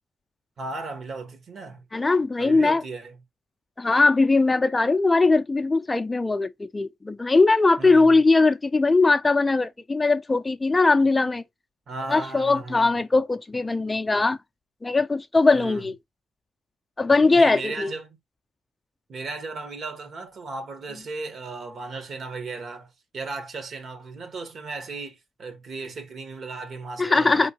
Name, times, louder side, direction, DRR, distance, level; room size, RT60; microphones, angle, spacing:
voice 1, 0.6-1.8 2.4-3.2 7.8-8.1 11.9-13.0 15.5-15.9 17.3-18.2 19.1-27.5, right 3 dB, 55° right, 1.5 m, -36 dB
voice 2, 1.9-2.8 3.8-11.4 12.1-14.4 14.8-15.9 17.0-17.9 27.0-27.5, left 3 dB, 20° left, 0.5 m, -20 dB
4.3 x 3.6 x 2.9 m
cardioid pair, 90°, 0 cm